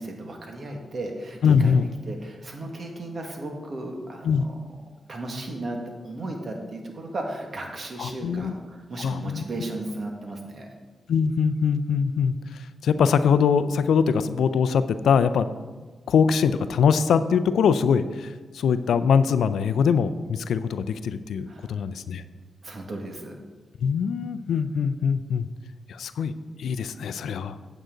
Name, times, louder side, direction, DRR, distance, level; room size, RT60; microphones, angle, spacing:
voice 1, 0.0-1.8 2.1-4.6 5.1-5.8 6.0-10.7 21.5-21.8 22.6-23.3, right 2 dB, 55° right, 2 dB, 1.8 m, -35 dB
voice 2, 1.4-1.9 4.2-4.4 8.0-8.5 9.0-9.4 11.1-15.5 16.1-22.2 23.8-25.5 25.9-26.3 26.6-27.6, left 6 dB, 85° left, 13 dB, 0.4 m, -22 dB
8.9 x 7.9 x 3.9 m, 1.4 s
cardioid pair, 60°, 0 cm